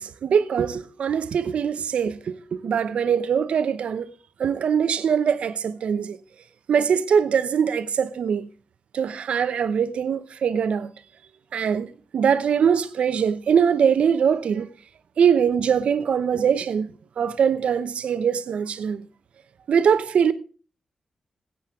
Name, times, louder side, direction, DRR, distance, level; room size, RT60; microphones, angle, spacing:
voice 1, 0.0-4.1 4.4-6.2 6.7-8.5 8.9-10.9 11.5-14.7 15.2-16.9 17.2-19.0 19.7-20.3, right 7 dB, 80° right, 0.7 m, -22 dB
15.5 x 8.4 x 3.6 m
supercardioid pair, 45°, 2 cm